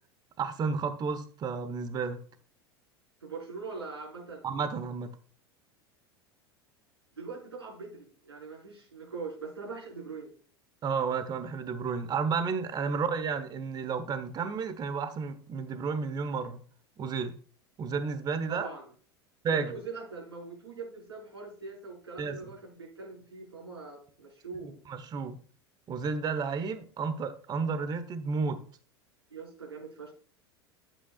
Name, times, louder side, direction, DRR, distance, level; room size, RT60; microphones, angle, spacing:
voice 1, 0.4-2.2 4.4-5.1 10.8-16.6 17.0-17.3 17.8-18.7 19.4-19.8 22.2-22.4 24.6-25.4 25.9-28.6, right 5 dB, 30° right, 11 dB, 1.2 m, -32 dB
voice 2, 3.2-4.5 7.1-10.3 18.5-18.9 19.5-24.7 29.3-30.1, right 4 dB, 80° right, -3 dB, 5.3 m, -42 dB
11.0 x 9.0 x 2.5 m, 0.42 s
figure-of-eight pair, 80°, 13 cm